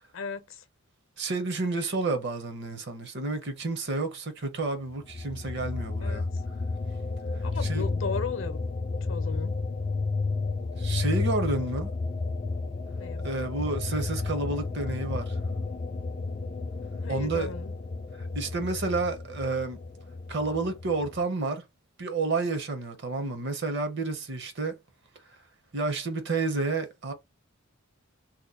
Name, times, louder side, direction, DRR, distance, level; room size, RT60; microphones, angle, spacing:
voice 1, 0.1-0.6 6.0-6.2 7.4-8.6 9.1-9.6 13.0-13.2 16.9-17.7 23.1-23.2, left 4 dB, 65° left, 0.7 m, -36 dB
voice 2, 1.2-6.3 7.6-7.9 10.8-11.9 13.2-15.4 17.1-17.5 18.2-19.8 20.3-21.6 22.0-24.7 25.7-27.1, right 3 dB, 55° right, 0.8 m, -30 dB
sound 1, 5.1-21.2, left 3 dB, 30° left, 0.3 m, -32 dB
2.9 x 2.2 x 3.7 m
head